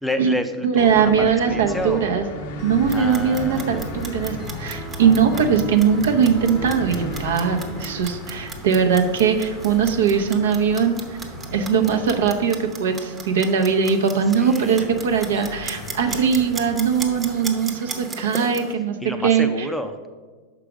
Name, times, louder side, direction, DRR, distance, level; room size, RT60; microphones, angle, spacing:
voice 1, 0.0-2.1 2.9-3.8 14.3-14.9 19.0-20.1, left 1 dB, ahead, 7 dB, 0.4 m, -30 dB
voice 2, 0.6-2.2 2.6-11.0 11.5-19.0 19.2-19.4, right 6 dB, 85° right, 5 dB, 0.7 m, -20 dB
Acoustic guitar, 0.8-7.9, right 4 dB, 40° right, 1.0 m, -36 dB
sound 1, 0.9-18.1, left 4 dB, 60° left, 0.5 m, -37 dB
Clock, 2.7-18.7, right 3 dB, 15° right, 0.8 m, -37 dB
6.0 x 4.9 x 4.9 m, 1.4 s
supercardioid pair, 135°, 0 cm